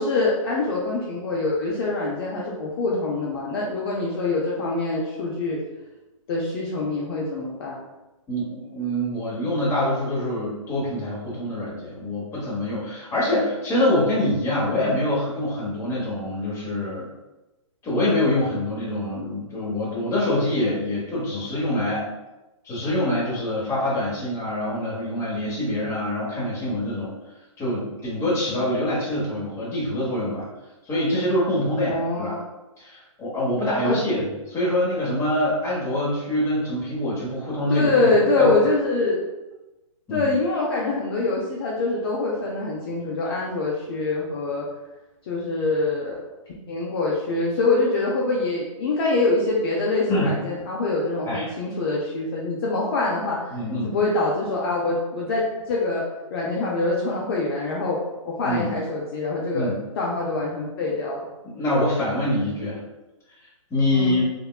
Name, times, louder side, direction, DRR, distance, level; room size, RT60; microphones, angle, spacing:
voice 1, 0.0-5.6 6.3-7.8 31.9-32.5 33.8-34.0 37.7-39.3 40.1-44.7 45.3-46.2 46.7-53.4 53.8-56.0 56.3-58.0 58.2-61.2 63.9-64.2, left 3 dB, 45° left, -4 dB, 0.5 m, -24 dB
voice 2, 8.3-17.1 17.8-22.1 22.6-27.1 27.6-30.5 30.9-32.4 32.8-38.5 40.1-40.3 50.1-50.3 51.2-51.4 53.5-53.9 58.4-58.7 59.5-59.7 61.4-62.8 63.7-64.2, left 1 dB, 15° left, -7 dB, 1.0 m, -25 dB
3.3 x 2.2 x 2.3 m, 1.0 s
hypercardioid pair, 145°, 17 cm